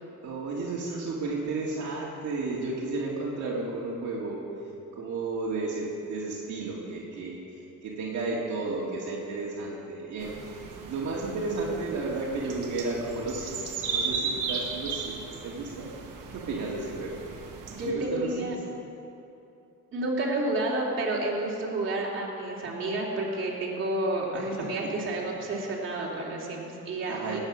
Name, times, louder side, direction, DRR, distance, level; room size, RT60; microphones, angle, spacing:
voice 1, 0.2-4.4 4.9-7.4 7.8-10.6 10.8-15.9 16.3-17.2 17.9-18.5 24.3-24.9 27.1-27.4, right 3 dB, 65° right, -4 dB, 2.2 m, -33 dB
sound 1, 10.2-17.9, right 5 dB, 85° right, 1.9 m, -36 dB
voice 2, 17.8-18.5 19.9-27.4, right 2 dB, 40° right, -4 dB, 3.0 m, -30 dB
18.5 x 8.9 x 6.3 m, 2.8 s
cardioid pair, 140°, 30 cm